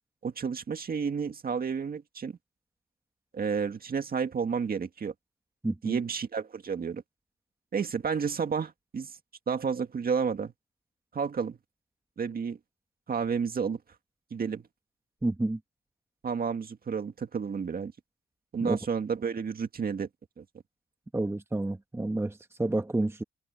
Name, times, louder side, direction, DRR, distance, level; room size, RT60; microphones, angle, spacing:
voice 1, 0.2-2.4 3.3-5.1 5.8-7.0 7.7-9.1 9.5-10.5 11.1-11.6 12.2-12.6 13.1-13.8 14.3-14.6 16.2-17.9 18.5-20.1 20.4-20.5, right 6 dB, 50° right, 1.9 m, -31 dB
voice 2, 5.6-6.0 15.2-15.6 18.6-18.8 21.1-23.2, right 2 dB, 10° right, 1.4 m, -29 dB
cardioid pair, 100°, 20 cm